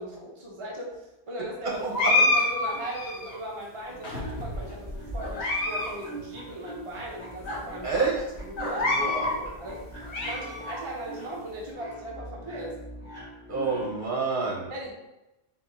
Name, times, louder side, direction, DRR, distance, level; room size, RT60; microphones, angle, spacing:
voice 1, 0.0-1.8 2.3-7.9 8.4-9.8 10.2-12.8 14.7-14.9, right 1 dB, 30° right, -3 dB, 0.8 m, -38 dB
voice 2, 1.6-2.3 7.8-8.2 8.8-9.3 13.5-14.7, right 4 dB, 50° right, -3 dB, 1.3 m, -28 dB
sound 1, 1.9-3.4 4.0-4.7 5.2-5.9 6.2-6.3 7.0-7.1 7.5-7.6 8.6-9.4 9.8-10.8, left 2 dB, 85° left, 1.3 m, -27 dB
sound 2, 3.9-14.1, right 1 dB, 10° right, 1.5 m, -42 dB
4.5 x 3.8 x 2.7 m, 0.95 s
omnidirectional pair, 1.1 m